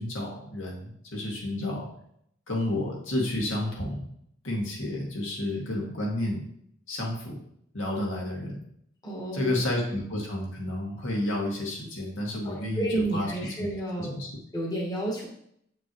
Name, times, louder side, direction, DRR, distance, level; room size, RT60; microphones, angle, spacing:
voice 1, 0.0-1.9 2.5-4.0 4.4-6.4 6.9-7.4 7.7-8.6 9.3-12.9 13.1-13.3 13.6-13.7 14.0-14.3, left 1 dB, 75° left, -2 dB, 1.9 m, -30 dB
voice 2, 9.0-9.5 12.4-14.1 14.5-15.2, right 1 dB, 20° left, -2 dB, 1.2 m, -31 dB
7.7 x 5.9 x 3.0 m, 0.71 s
head